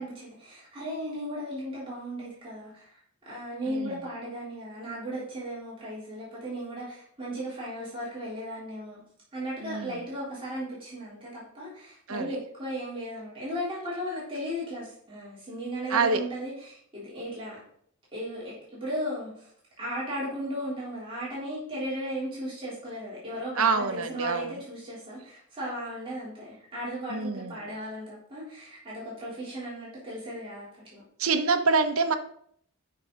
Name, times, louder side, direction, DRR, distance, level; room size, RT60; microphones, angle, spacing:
voice 1, 0.0-3.0 3.3-9.0 9.3-17.6 18.1-19.5 19.8-31.0, equal, 25° right, -7 dB, 3.5 m, -36 dB
voice 2, 9.6-10.0 12.1-12.3 15.9-16.2 23.6-24.6 27.1-27.6 31.2-32.1, right 4 dB, 80° right, 6 dB, 1.0 m, -26 dB
11.0 x 5.7 x 3.9 m, 0.63 s
head